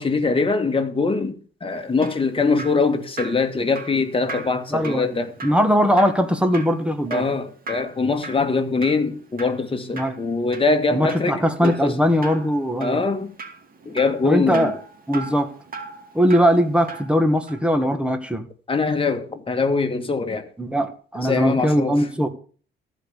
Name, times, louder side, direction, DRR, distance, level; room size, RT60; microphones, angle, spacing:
voice 1, 0.0-5.3 7.1-12.0 12.8-13.3 13.9-14.7 18.7-20.5 21.2-22.1, left 4 dB, 25° left, 2.0 m, -23 dB
Drip, 1.7-17.2 17.5-17.6, right 3 dB, 45° right, 2.5 m, -39 dB
voice 2, 4.7-5.1 5.4-7.3 9.9-10.2 10.9-13.0 14.2-14.7 15.1-15.5 16.1-18.5 20.6-22.3, equal, 5° right, 1.9 m, -20 dB
14.5 x 5.2 x 8.4 m
cardioid pair, 90°, 20 cm